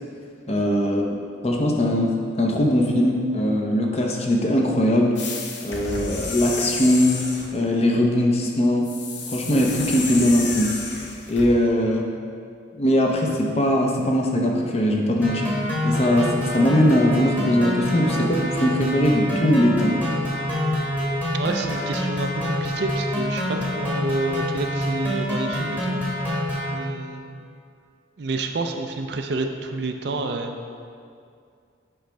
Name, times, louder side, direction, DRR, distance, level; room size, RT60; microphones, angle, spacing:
voice 1, 0.5-1.2 1.4-2.1 2.4-5.2 5.6-7.3 7.5-8.9 9.3-10.7 11.3-12.1 12.8-15.5 15.8-20.2, left 1 dB, 35° left, 0 dB, 0.6 m, -20 dB
sound 1, 5.2-7.6 8.8-11.5, left 3 dB, 70° left, 0.8 m, -31 dB
sound 2, 15.2-26.7, left 1 dB, 10° left, 1.1 m, -26 dB
voice 2, 20.7-26.4 26.7-27.5 28.2-30.5, right 2 dB, 60° right, 5 dB, 0.4 m, -29 dB
7.7 x 5.1 x 3.4 m, 2.3 s
head